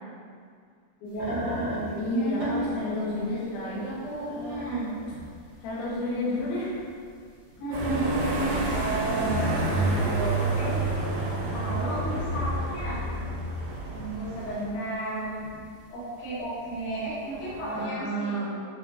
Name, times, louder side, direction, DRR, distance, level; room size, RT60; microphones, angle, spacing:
voice 1, 1.0-3.2 4.5-4.9 7.6-8.6 9.0-10.8 11.5-13.0 13.9-15.4 15.9-18.7, right 1 dB, 75° left, -9 dB, 4.0 m, -32 dB
Chair Squeak, 1.1-17.9, right 2 dB, 65° right, 1.0 m, -39 dB
voice 2, 2.0-4.8 5.6-6.7 8.3-9.0 17.7-18.5, left 1 dB, 60° left, -10 dB, 3.6 m, -32 dB
sound 1, 7.7-14.7, right 2 dB, 85° right, 3.8 m, -29 dB
9.8 x 5.3 x 3.0 m, 2.1 s
omnidirectional pair, 5.3 m